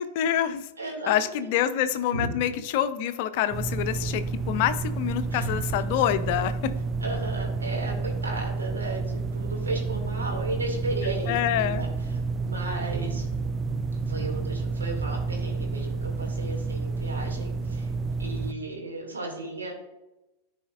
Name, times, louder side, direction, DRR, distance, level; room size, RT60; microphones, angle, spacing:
voice 1, 0.0-0.7 1.1-6.7 11.3-11.8, left 11 dB, 50° left, 12 dB, 0.6 m, -26 dB
voice 2, 0.8-1.1 1.4-1.6 2.1-2.3 5.3-5.6 7.0-13.3 13.9-17.9 18.2-19.7, right 2 dB, 75° right, 1 dB, 2.1 m, -35 dB
sound 1, 3.5-18.5, right 4 dB, 25° right, 0.4 m, -30 dB
14.0 x 4.9 x 2.4 m, 0.99 s
figure-of-eight pair, 90°, 0 cm